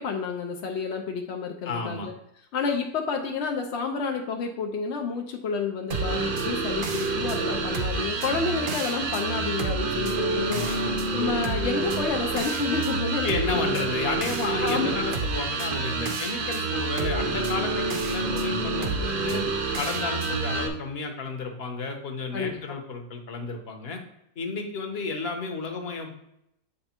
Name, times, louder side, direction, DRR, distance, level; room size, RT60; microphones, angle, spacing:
voice 1, 0.0-2.1 2.5-13.8 14.6-15.0 22.3-22.8, left 5 dB, 70° left, 2 dB, 0.6 m, -30 dB
voice 2, 1.6-2.1 10.5-11.1 13.2-19.4 19.8-24.0 24.4-26.1, left 4 dB, 45° left, 4 dB, 1.0 m, -32 dB
sound 1, 5.9-20.7, right 3 dB, 85° right, 0.4 m, -28 dB
8.0 x 3.2 x 4.4 m, 0.80 s
omnidirectional pair, 1.9 m